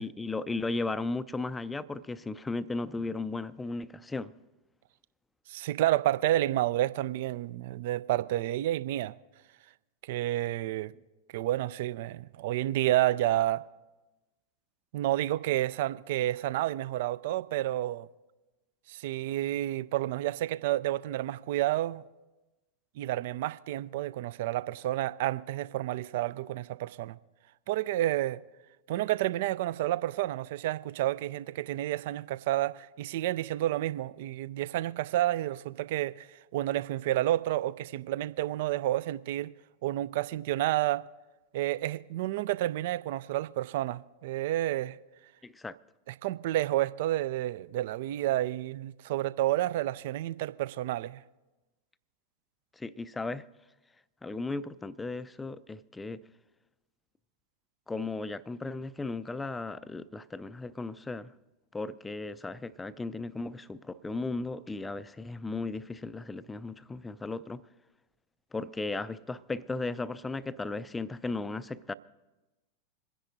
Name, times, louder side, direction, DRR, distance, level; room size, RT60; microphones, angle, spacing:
voice 1, 0.0-4.3 45.4-45.8 52.8-53.4 54.2-56.2 57.9-61.3 61.7-67.6 68.5-71.9, left 3 dB, 10° left, 0.4 m, -36 dB
voice 2, 5.5-9.1 10.1-10.9 11.3-13.6 14.9-18.1 18.9-22.0 23.0-27.2 27.7-28.4 28.9-39.5 39.8-41.0 41.5-45.0 46.1-51.2, right 14 dB, 50° right, 0.4 m, -30 dB
27.0 x 10.0 x 2.6 m
figure-of-eight pair, 90°, 0 cm